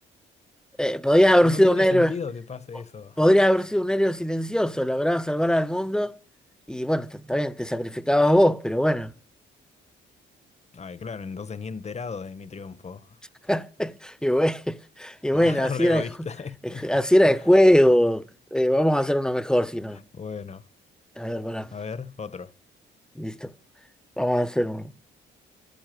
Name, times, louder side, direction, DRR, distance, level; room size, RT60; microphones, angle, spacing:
voice 1, 0.8-2.2 3.2-6.1 6.7-9.1 13.5-13.9 14.2-16.3 16.6-18.2 18.5-20.0 21.2-21.7 23.2-23.5 24.2-24.9, equal, 5° left, 1.1 m, -21 dB
voice 2, 1.4-3.2 10.7-13.2 15.3-17.0 19.9-20.6 21.7-22.5, left 5 dB, 35° left, 1.3 m, -35 dB
13.5 x 10.5 x 7.9 m
cardioid pair, 90°, 20 cm